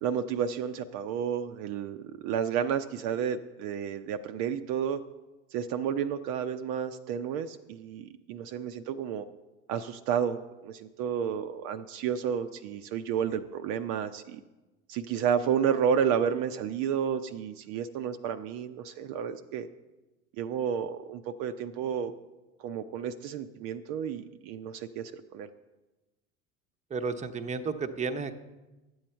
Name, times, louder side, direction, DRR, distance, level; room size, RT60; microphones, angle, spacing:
voice 1, 0.0-2.0 2.2-5.0 5.5-9.3 9.7-14.4 14.9-19.7 20.4-22.1 22.6-25.5, right 8 dB, 55° right, 8 dB, 0.6 m, -31 dB
voice 2, 26.9-28.3, right 4 dB, 20° right, 8 dB, 0.8 m, -32 dB
11.0 x 7.9 x 4.4 m, 1.1 s
hypercardioid pair, 70°, 38 cm